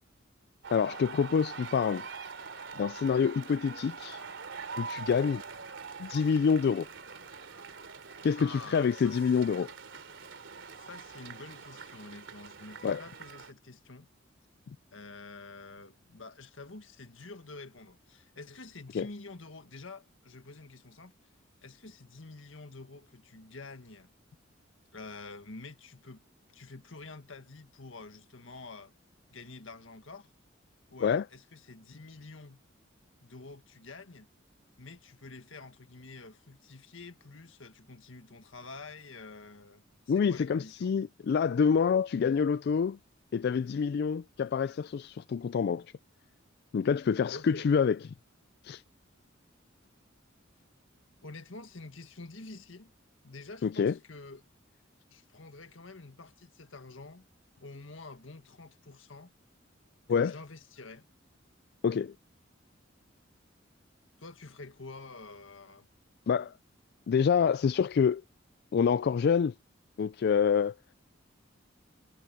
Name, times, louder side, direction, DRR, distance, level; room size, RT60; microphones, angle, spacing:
sound 1, 0.6-13.5, right 5 dB, 70° right, 3.1 m, -44 dB
voice 1, 0.7-2.0 2.8-4.2 4.8-5.4 6.0-6.9 8.2-9.7 12.8-13.0 18.9-19.1 31.0-31.2 40.1-43.0 43.3-45.9 46.7-48.0 48.6-48.8 53.6-53.9 60.1-60.3 61.8-62.1 66.3-66.5 67.1-68.2 68.7-69.5 70.0-70.7, left 6 dB, 55° left, 0.3 m, -27 dB
voice 2, 8.4-9.2 10.7-14.1 14.9-21.1 21.6-24.1 24.9-26.2 26.5-28.9 29.3-30.3 30.9-32.6 33.2-34.3 34.8-40.9 47.3-47.7 51.2-52.9 53.2-54.4 55.1-57.3 57.6-59.3 60.1-61.1 64.2-65.9, left 3 dB, 75° left, 1.8 m, -48 dB
head